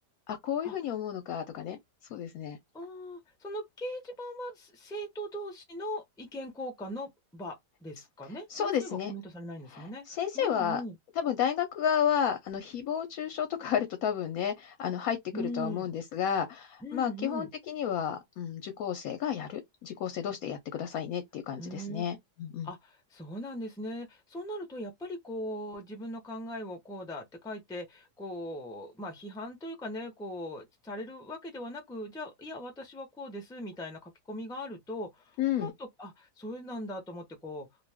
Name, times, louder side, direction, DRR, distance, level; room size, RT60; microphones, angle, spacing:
voice 1, 0.3-1.8 2.1-2.6 8.5-9.1 9.7-10.8 11.2-22.7 35.4-35.7, left 8 dB, 70° left, 0.9 m, -32 dB
voice 2, 2.7-11.0 15.3-15.9 16.8-17.5 21.6-22.1 22.6-37.7, equal, 5° left, 0.4 m, -40 dB
2.5 x 2.3 x 3.4 m
omnidirectional pair, 1.8 m